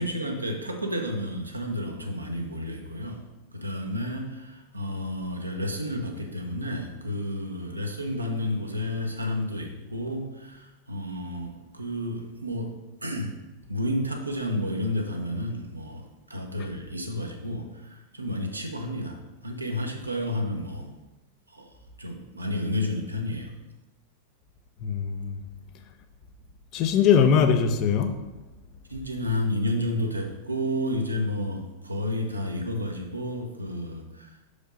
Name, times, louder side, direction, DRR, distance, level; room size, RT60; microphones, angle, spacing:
voice 1, 0.0-12.7 13.0-13.4 13.7-20.9 21.5-21.7 22.0-23.5 28.9-34.4, left 1 dB, 85° right, 2 dB, 0.9 m, -31 dB
voice 2, 24.8-25.4 26.7-28.1, left 7 dB, 40° left, 7 dB, 0.6 m, -21 dB
5.5 x 5.0 x 5.2 m, 1.1 s
figure-of-eight pair, 90°, 0 cm